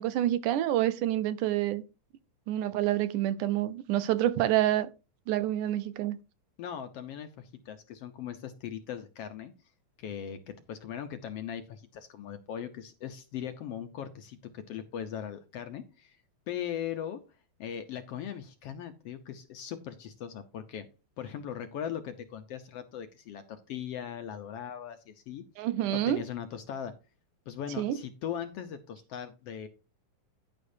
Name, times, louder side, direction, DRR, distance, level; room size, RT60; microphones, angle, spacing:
voice 1, 0.0-1.8 2.5-4.9 5.3-6.2 25.6-26.2 27.8-28.0, right 13 dB, 85° right, 2.3 m, -27 dB
voice 2, 6.6-9.5 10.0-16.2 16.5-17.2 17.6-20.9 21.2-25.4 25.9-26.9 27.5-29.7, left 9 dB, 70° left, 1.5 m, -39 dB
10.0 x 9.8 x 2.7 m
omnidirectional pair, 3.5 m